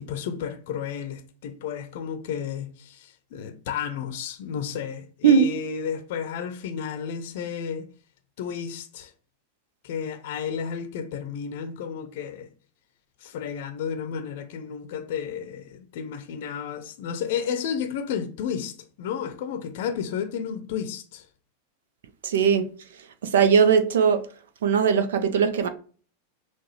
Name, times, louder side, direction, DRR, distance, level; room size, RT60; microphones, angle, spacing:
voice 1, 0.0-7.9 8.4-9.1 9.8-12.5 13.2-21.3, left 7 dB, 50° left, 0.6 m, -32 dB
voice 2, 22.2-22.7 23.3-24.2 24.6-25.7, right 7 dB, 60° right, 0.5 m, -19 dB
6.0 x 2.2 x 3.0 m
figure-of-eight pair, 90°, 0 cm